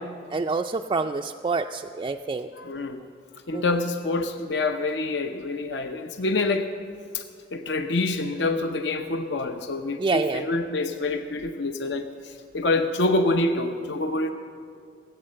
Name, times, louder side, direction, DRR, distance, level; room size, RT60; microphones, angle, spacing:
voice 1, 0.3-2.5 3.5-3.9 10.0-10.4, right 4 dB, 25° right, 3 dB, 0.3 m, -27 dB
voice 2, 2.6-3.0 3.5-6.7 7.1-7.2 7.5-14.3, left 2 dB, 70° left, 6 dB, 0.7 m, -26 dB
18.0 x 8.2 x 7.6 m, 2.3 s
head